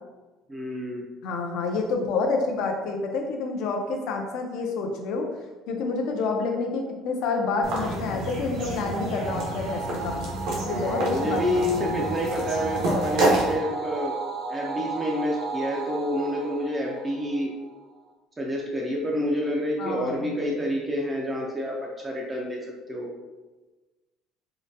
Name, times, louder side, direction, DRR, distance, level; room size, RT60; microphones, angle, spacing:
voice 1, 0.5-1.0 10.6-14.2 14.5-17.5 18.4-22.6 22.9-23.1, left 1 dB, 15° right, -2 dB, 0.4 m, -28 dB
voice 2, 1.2-5.3 5.7-10.2 10.6-12.0 12.8-13.1 19.8-20.6, left 4 dB, 60° left, 3 dB, 0.5 m, -28 dB
sound 1, 7.6-13.5, right 2 dB, 70° right, 0.8 m, -29 dB
sound 2, 9.2-17.8, right 4 dB, 45° right, 0.6 m, -34 dB
3.7 x 2.2 x 2.6 m, 1.2 s
cardioid pair, 160°, 0 cm